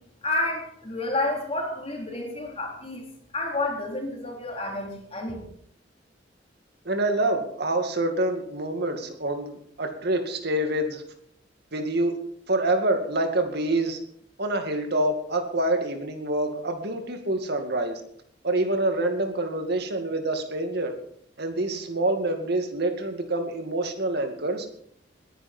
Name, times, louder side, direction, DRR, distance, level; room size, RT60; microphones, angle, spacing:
voice 1, 0.2-3.0 3.3-5.5, left 2 dB, 35° left, 0 dB, 4.0 m, -30 dB
voice 2, 6.9-11.0 11.7-12.2 12.5-14.0 14.4-18.0 18.4-20.9 21.4-24.7, right 1 dB, 60° right, 5 dB, 2.3 m, -26 dB
20.5 x 10.5 x 4.5 m, 0.67 s
head